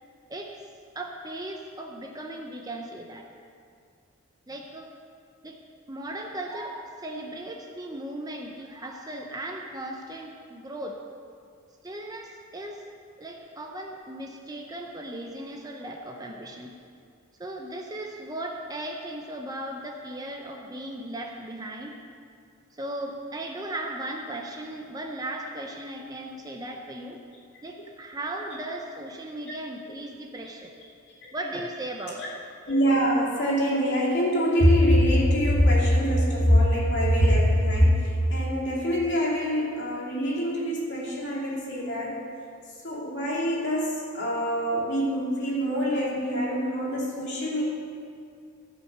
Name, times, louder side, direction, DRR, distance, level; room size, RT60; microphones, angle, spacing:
voice 1, 0.9-3.3 4.5-4.9 5.4-5.6 5.9-11.0 11.8-12.8 13.2-16.7 17.4-22.0 22.7-27.2 27.6-30.7 31.3-32.3, right 1 dB, 15° right, 2 dB, 0.6 m, -37 dB
voice 2, 32.6-42.2 42.8-47.6, equal, 55° left, -5 dB, 2.6 m, -23 dB
15.0 x 5.6 x 6.6 m, 2.3 s
head